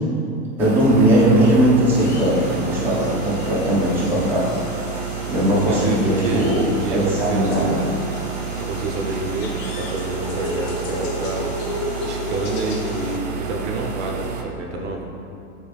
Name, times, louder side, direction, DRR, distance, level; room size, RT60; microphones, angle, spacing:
voice 1, 0.6-4.5 5.3-6.6 6.9-7.7, right 1 dB, 5° right, -10 dB, 1.2 m, -18 dB
sound 1, 0.6-14.4, right 7 dB, 35° right, 0.4 m, -30 dB
sound 2, 2.0-13.2, left 2 dB, 30° left, 0.6 m, -34 dB
voice 2, 5.7-6.5 6.8-7.9 8.6-11.5 12.0-15.0, right 2 dB, 60° right, 0 dB, 0.9 m, -28 dB
8.0 x 4.1 x 3.4 m, 2.7 s
supercardioid pair, 160°, 39 cm